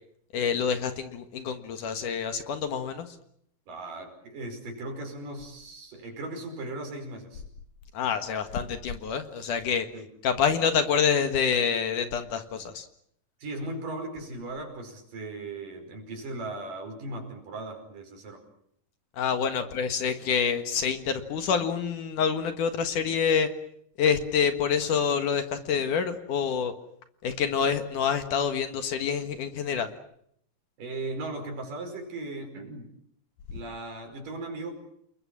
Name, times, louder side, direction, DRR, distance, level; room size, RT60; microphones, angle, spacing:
voice 1, 0.3-3.1 7.9-9.9 10.2-12.9 19.2-23.5 24.0-26.7 27.2-29.9, left 6 dB, 65° left, 8 dB, 2.9 m, -27 dB
voice 2, 3.7-7.4 9.9-10.1 13.4-18.4 19.6-19.7 30.8-32.9 33.5-34.7, right 2 dB, 65° right, 4 dB, 6.6 m, -37 dB
29.0 x 22.0 x 7.3 m, 0.71 s
omnidirectional pair, 4.2 m